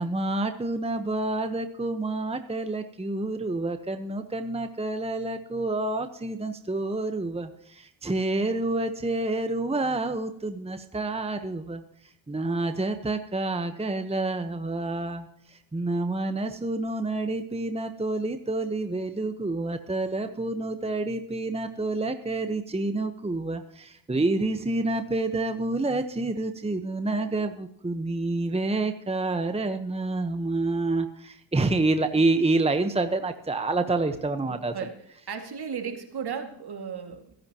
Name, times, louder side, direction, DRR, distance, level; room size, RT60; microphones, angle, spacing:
voice 1, 0.0-11.8 12.3-34.7, right 2 dB, 15° right, 8 dB, 1.1 m, -28 dB
voice 2, 34.5-34.9 35.3-37.3, right 6 dB, 50° right, 5 dB, 2.3 m, -35 dB
23.0 x 10.5 x 3.0 m, 0.69 s
cardioid pair, 65°, 48 cm